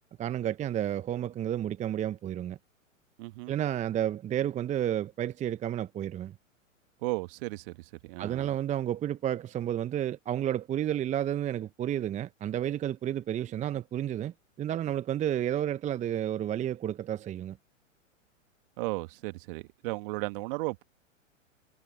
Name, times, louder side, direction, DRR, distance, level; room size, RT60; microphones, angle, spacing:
voice 1, 0.2-2.6 3.5-6.3 8.2-17.6, right 11 dB, 20° right, 1.0 m, -31 dB
voice 2, 3.2-3.5 7.0-8.5 18.8-20.8, right 25 dB, 45° right, 2.0 m, -35 dB
figure-of-eight pair, 105°, 39 cm